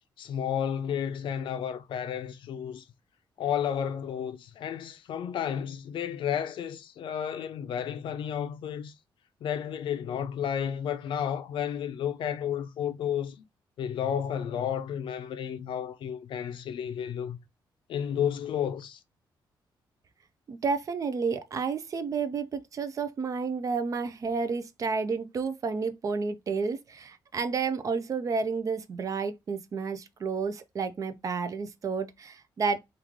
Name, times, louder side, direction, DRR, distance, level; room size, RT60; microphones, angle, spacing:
voice 1, 0.2-2.8 3.4-8.9 9.4-13.4 13.8-17.4 17.9-19.0, left 9 dB, 70° left, 0.5 m, -32 dB
voice 2, 20.5-32.8, right 5 dB, 40° right, 0.4 m, -31 dB
3.1 x 2.4 x 3.5 m
cardioid pair, 140°, 9 cm